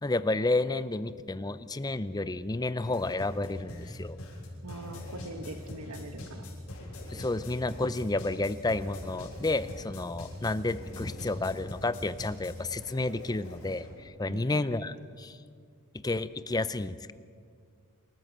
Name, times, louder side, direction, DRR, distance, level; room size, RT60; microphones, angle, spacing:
voice 1, 0.0-4.2 7.1-15.4 15.9-17.1, left 2 dB, 20° left, 14 dB, 0.6 m, -31 dB
sound 1, 2.8-13.9, left 1 dB, 75° left, 6.9 m, -43 dB
voice 2, 4.6-6.5 10.9-11.3 14.3-15.0, right 1 dB, 85° right, 5 dB, 1.5 m, -43 dB
28.0 x 14.0 x 7.4 m, 2.1 s
head